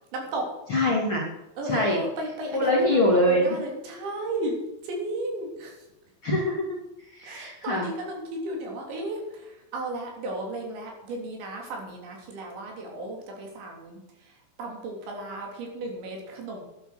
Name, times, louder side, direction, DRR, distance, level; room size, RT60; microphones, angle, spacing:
voice 1, 0.1-0.5 1.6-4.6 4.8-5.9 7.2-16.6, right 1 dB, 70° right, 1 dB, 5.6 m, -34 dB
voice 2, 0.7-1.2 1.7-2.0 2.5-3.5 6.2-6.8 7.1-7.9, left 1 dB, 35° left, -2 dB, 2.3 m, -23 dB
12.5 x 10.5 x 6.5 m, 0.98 s
omnidirectional pair, 5.4 m